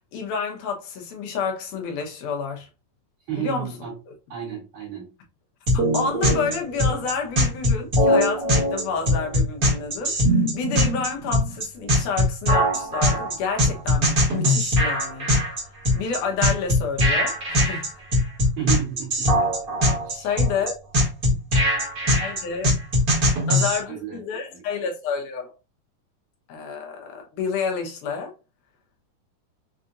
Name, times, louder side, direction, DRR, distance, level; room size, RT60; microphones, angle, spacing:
voice 1, 0.1-2.7 3.4-3.7 5.7-15.3 15.9-17.9 20.1-20.7 21.3-21.4 22.2-22.7 23.5-25.5 26.5-28.3, left 5 dB, 75° left, 2.5 m, -29 dB
voice 2, 3.3-3.9 4.3-5.1 18.6-19.3 20.0-20.3 23.9-24.2 24.5-24.6, right 10 dB, 70° right, 3.3 m, -31 dB
sound 1, 5.7-23.8, equal, 35° right, 1.5 m, -21 dB
6.7 x 2.5 x 2.6 m
omnidirectional pair, 3.7 m